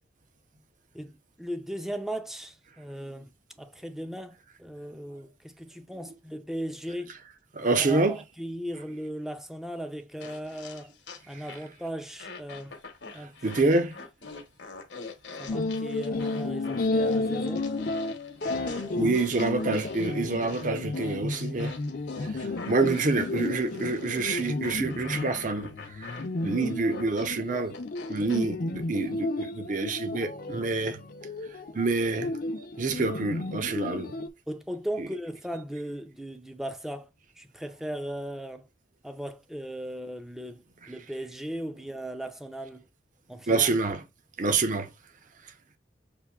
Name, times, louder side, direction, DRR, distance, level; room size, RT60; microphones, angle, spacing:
voice 1, 0.9-3.3 3.6-7.2 7.6-10.9 11.3-12.7 13.1-13.3 15.4-17.7 18.7-19.1 30.5-30.7 34.5-37.1 37.4-38.7 39.0-42.9 43.3-43.7, equal, ahead, 0.5 m, -37 dB
voice 2, 7.5-8.2 11.3-11.4 13.1-14.0 18.6-21.8 22.2-27.7 28.1-31.0 31.7-32.3 32.8-34.1 35.0-35.1 43.5-44.0 44.4-44.9 45.4-45.5, right 3 dB, 45° right, 0.7 m, -27 dB
sound 1, 10.2-11.8 12.2-28.4, left 4 dB, 70° left, 0.9 m, -44 dB
sound 2, 15.5-34.3, left 2 dB, 50° left, 0.6 m, -32 dB
6.8 x 2.6 x 2.3 m
head